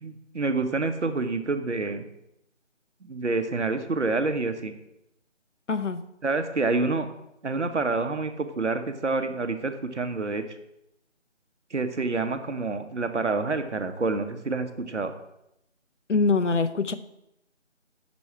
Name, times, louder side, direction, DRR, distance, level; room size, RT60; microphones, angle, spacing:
voice 1, 0.0-2.0 3.0-4.7 6.2-7.1 7.4-10.4 11.7-15.1, right 3 dB, 70° right, 8 dB, 1.0 m, -27 dB
voice 2, 5.7-6.0 16.1-16.9, left 4 dB, 75° left, 11 dB, 0.7 m, -23 dB
7.3 x 6.2 x 4.6 m, 0.83 s
figure-of-eight pair, 180°, 37 cm